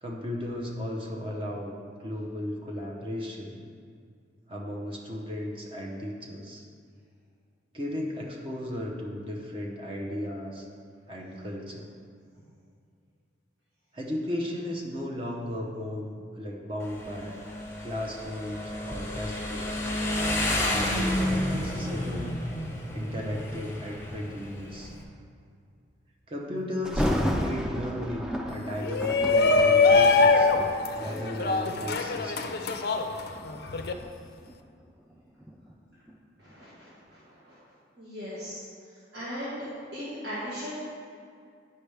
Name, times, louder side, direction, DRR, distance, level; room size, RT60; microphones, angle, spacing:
voice 1, 0.0-3.6 4.5-6.6 7.7-10.7 11.1-11.9 13.9-17.4 17.8-19.8 20.7-22.4 22.9-24.9 26.3-30.5 31.0-32.6, left 1 dB, 30° right, -2 dB, 0.8 m, -35 dB
Motorcycle, 16.8-25.0, left 1 dB, 15° left, 0.8 m, -31 dB
Thunder, 26.8-31.8 32.5-32.7 33.3-36.2 36.5-36.6, equal, 5° right, 0.4 m, -32 dB
Shout, 28.8-33.9, left 4 dB, 55° left, 0.5 m, -22 dB
voice 2, 36.4-36.9 37.5-37.6 38.0-38.6 39.1-39.6 39.9-40.8, equal, 65° right, -11 dB, 1.9 m, -37 dB
9.9 x 5.4 x 3.4 m, 2.2 s
head